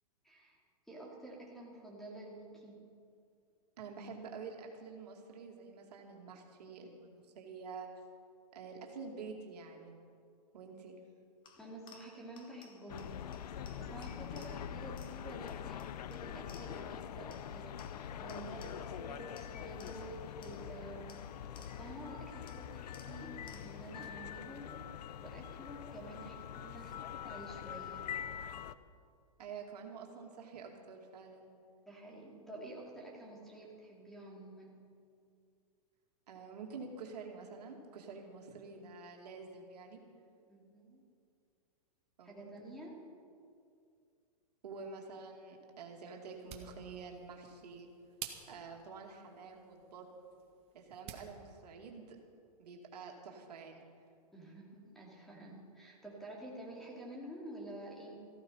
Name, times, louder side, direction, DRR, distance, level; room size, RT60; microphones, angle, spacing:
voice 1, 0.2-0.6 0.9-2.8 11.6-13.3 13.7-21.3 21.8-24.8 25.2-28.1 31.9-34.9 40.5-41.0 42.2-43.0 54.3-58.2, right 1 dB, ahead, -3 dB, 2.9 m, -49 dB
voice 2, 3.8-7.9 8.5-9.9 10.5-11.0 29.4-31.5 36.3-40.0 42.2-42.5 44.6-47.9 48.5-50.1 50.7-52.2 52.6-53.8, right 5 dB, 80° right, 1 dB, 2.5 m, -48 dB
sound 1, 11.4-17.0 17.3-19.0 19.4-22.0 22.5-24.0, left 5 dB, 25° left, 1.4 m, -61 dB
sound 2, 12.9-28.8, left 9 dB, 75° left, 0.7 m, -44 dB
sound 3, 46.2-51.3, right 9 dB, 30° right, 1.4 m, -52 dB
15.0 x 13.5 x 5.7 m, 2.4 s
hypercardioid pair, 140°, 21 cm